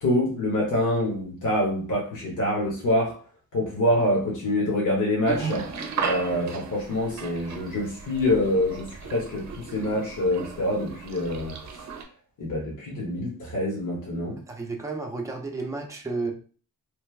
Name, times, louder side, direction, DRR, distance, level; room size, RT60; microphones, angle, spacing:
voice 1, 0.0-3.1 3.5-5.6 6.0-11.5 12.4-14.4, left 1 dB, 60° left, -3 dB, 1.3 m, -26 dB
sound 1, 5.2-12.0, right 5 dB, 55° right, 0.7 m, -35 dB
voice 2, 14.5-16.3, right 3 dB, 10° right, 1 dB, 0.7 m, -32 dB
3.2 x 2.2 x 3.3 m, 0.39 s
cardioid pair, 90°, 34 cm